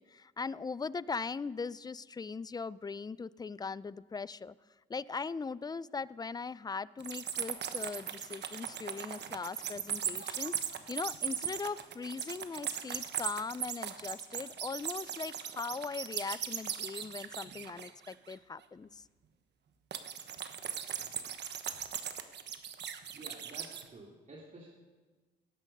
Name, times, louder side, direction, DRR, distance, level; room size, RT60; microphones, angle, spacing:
voice 1, 0.0-4.5 4.9-19.0, left 4 dB, 20° left, 19 dB, 0.4 m, -40 dB
sound 1, 7.0-18.3 19.9-23.8, right 8 dB, 60° right, 1.1 m, -38 dB
voice 2, 23.1-24.7, right 2 dB, 40° right, -2 dB, 2.5 m, -51 dB
17.5 x 12.5 x 5.4 m, 1.3 s
cardioid pair, 90°, 20 cm